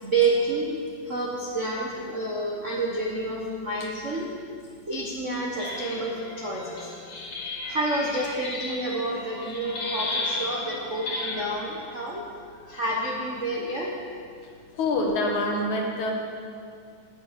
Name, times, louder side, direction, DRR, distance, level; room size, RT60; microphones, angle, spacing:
voice 1, 0.0-0.8 1.1-4.3 4.9-6.9 7.7-12.2 12.7-13.9, right 2 dB, 60° right, -2 dB, 0.7 m, -29 dB
sound 1, 5.6-11.8 12.7-13.3, left 2 dB, 50° left, 3.1 m, -34 dB
voice 2, 14.7-16.1, left 2 dB, 70° left, 0 dB, 3.0 m, -25 dB
17.5 x 7.1 x 6.9 m, 2.3 s
omnidirectional pair, 3.5 m